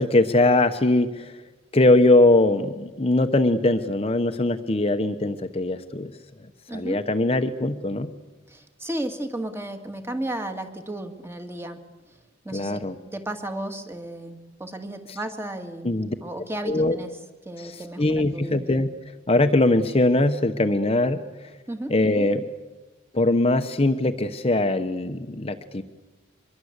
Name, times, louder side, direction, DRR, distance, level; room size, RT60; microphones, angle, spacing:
voice 1, 0.0-1.3 1.7-6.1 6.7-8.1 12.5-12.9 15.1-15.2 15.8-16.1 16.7-17.0 17.6-18.9 19.3-21.2 21.9-22.4 23.1-25.8, left 2 dB, 30° left, 7 dB, 1.0 m, -21 dB
voice 2, 6.7-7.1 8.5-11.8 12.4-12.8 13.0-17.1 17.4-18.7 21.7-21.9, right 1 dB, 10° right, 6 dB, 2.2 m, -34 dB
24.5 x 22.0 x 8.2 m, 1.2 s
head